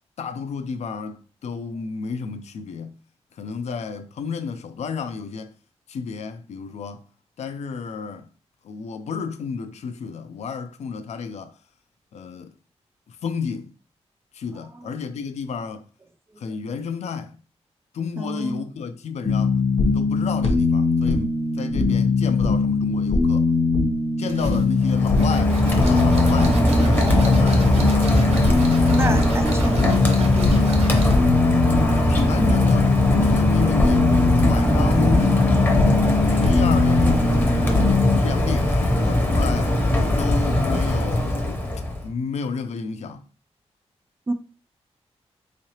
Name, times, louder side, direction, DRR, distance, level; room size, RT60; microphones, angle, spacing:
voice 1, 0.2-3.0 3.4-5.5 5.9-7.0 7.4-8.3 8.6-11.5 12.1-12.5 13.1-13.7 14.3-15.8 16.4-17.4 17.9-19.6 19.9-23.5 24.2-28.3 31.8-34.1 34.4-35.4 36.3-39.8 40.2-41.6 42.0-43.2, left 5 dB, 80° left, 0.4 m, -31 dB
voice 2, 18.2-18.7 28.9-30.6 44.3-44.4, right 2 dB, 20° right, 0.3 m, -29 dB
sound 1, 19.2-38.2, left 4 dB, 60° left, 0.8 m, -21 dB
sound 2, 24.3-31.3, right 3 dB, 70° right, 0.8 m, -37 dB
Rain, 24.8-42.1, left 1 dB, 20° left, 0.6 m, -21 dB
3.6 x 3.2 x 2.8 m
wide cardioid pair, 140°, 11 cm